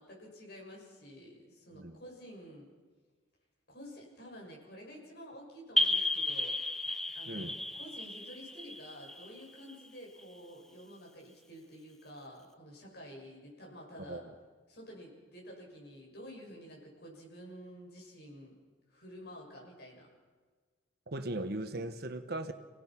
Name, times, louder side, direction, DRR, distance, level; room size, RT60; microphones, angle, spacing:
voice 1, 0.0-2.6 3.7-6.6 7.1-14.2 14.7-18.6 18.9-20.1, equal, 60° left, -1 dB, 7.0 m, -50 dB
sound 1, 5.8-10.2, left 2 dB, ahead, 0.8 m, -33 dB
voice 2, 21.1-22.5, right 1 dB, 55° right, 9 dB, 1.2 m, -38 dB
28.5 x 17.5 x 6.0 m, 1.4 s
head